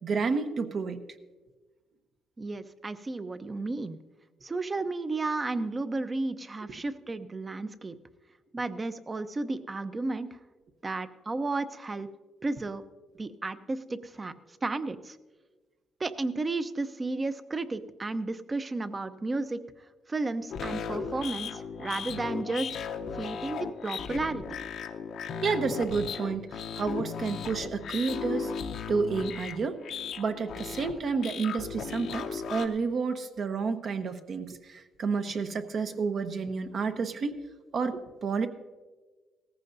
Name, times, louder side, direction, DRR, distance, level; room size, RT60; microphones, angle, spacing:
voice 1, 0.0-1.0 25.4-28.5 28.9-29.8 30.2-37.4 37.7-38.5, right 5 dB, 55° right, 7 dB, 1.0 m, -30 dB
voice 2, 2.4-4.0 4.4-7.9 8.5-10.4 10.8-12.1 12.4-12.8 13.2-14.3 14.6-15.2 16.0-19.6 20.1-22.7 23.1-24.4, right 3 dB, 25° right, 11 dB, 0.7 m, -33 dB
sound 1, 20.5-32.7, left 6 dB, 75° left, 0.8 m, -36 dB
17.5 x 15.0 x 2.7 m, 1.3 s
cardioid pair, 90°, 0 cm